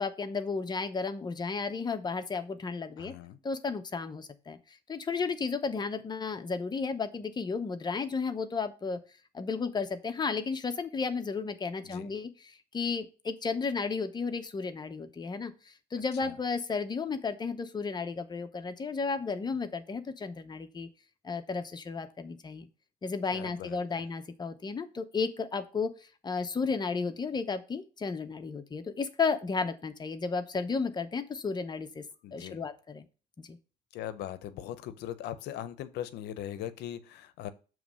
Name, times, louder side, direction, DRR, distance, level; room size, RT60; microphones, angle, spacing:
voice 1, 0.0-3.1 3.4-9.0 9.3-20.9 21.2-22.7 23.0-32.0 32.3-33.1 33.4-33.6, left 4 dB, 25° left, 0.7 m, -33 dB
voice 2, 3.0-3.4 11.8-12.1 16.2-16.4 23.3-24.1 32.2-32.6 33.9-37.5, left 11 dB, 80° left, 0.7 m, -40 dB
7.1 x 3.1 x 6.1 m
cardioid pair, 110°, 17 cm